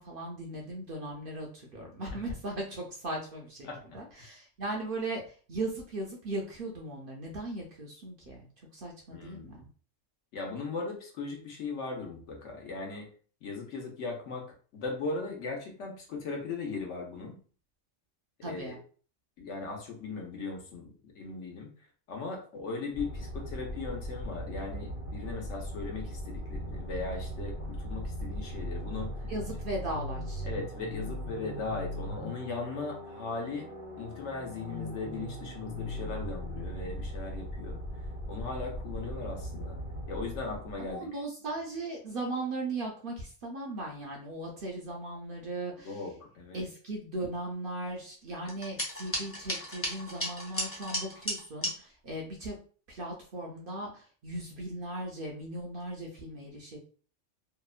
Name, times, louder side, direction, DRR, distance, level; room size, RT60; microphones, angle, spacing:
voice 1, 0.0-3.7 3.9-5.2 5.5-9.7 18.4-18.8 29.3-30.4 40.8-46.0 46.5-52.6 52.9-56.8, right 2 dB, 60° right, -1 dB, 0.6 m, -38 dB
voice 2, 3.6-4.0 9.1-9.7 10.3-13.1 13.4-14.5 14.7-17.4 18.4-18.7 19.4-21.7 22.1-29.1 30.4-33.7 34.0-37.8 38.3-39.8 40.1-41.1 45.8-46.6, left 4 dB, 75° left, 1 dB, 1.0 m, -38 dB
sound 1, 22.9-41.0, equal, 50° left, 0.9 m, -39 dB
sound 2, 48.5-51.7, equal, 20° left, 0.3 m, -35 dB
2.8 x 2.1 x 2.3 m, 0.41 s
omnidirectional pair, 1.3 m